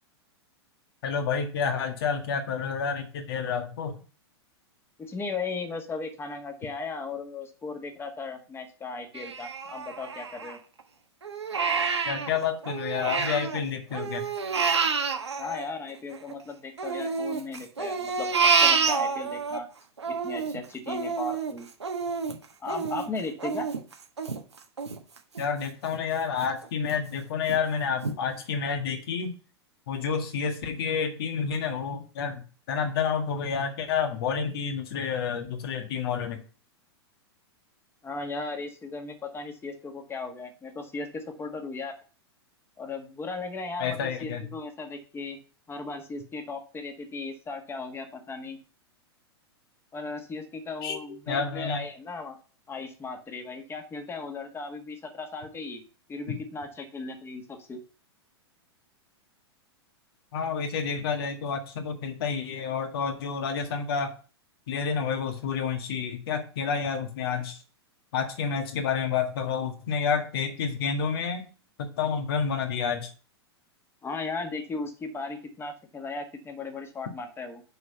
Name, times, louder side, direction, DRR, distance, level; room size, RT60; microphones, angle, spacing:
voice 1, 1.0-4.0 12.1-14.3 25.4-29.3 29.9-36.4 43.8-44.5 50.8-51.8 60.3-64.1 64.7-67.6 68.1-71.4 71.8-73.1, left 6 dB, 60° left, 5 dB, 1.8 m, -29 dB
voice 2, 5.0-10.6 15.4-19.7 20.1-21.7 22.6-23.7 38.0-41.9 42.8-45.4 45.7-48.6 49.9-52.4 52.7-55.8 56.1-57.8 74.0-77.6, left 3 dB, 15° left, 5 dB, 1.7 m, -36 dB
Crying sobbing, 9.1-10.8 11.2-13.6 13.9-16.3 16.8-19.6 20.0-25.5 25.9-26.0 26.4-27.0 27.5-27.6 28.0-28.2, right 5 dB, 90° right, 1.3 m, -28 dB
6.5 x 4.7 x 6.7 m, 0.37 s
hypercardioid pair, 105°, 14 cm